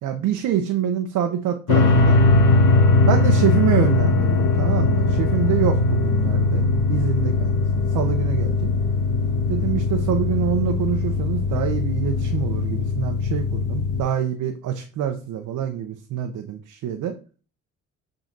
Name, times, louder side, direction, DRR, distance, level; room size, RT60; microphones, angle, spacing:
voice 1, 0.0-2.2 3.1-8.7 9.5-17.1, right 9 dB, 80° right, 5 dB, 0.9 m, -26 dB
sound 1, 1.7-14.0, left 3 dB, 85° left, 1.3 m, -20 dB
7.5 x 3.9 x 3.9 m, 0.36 s
cardioid pair, 90°, 30 cm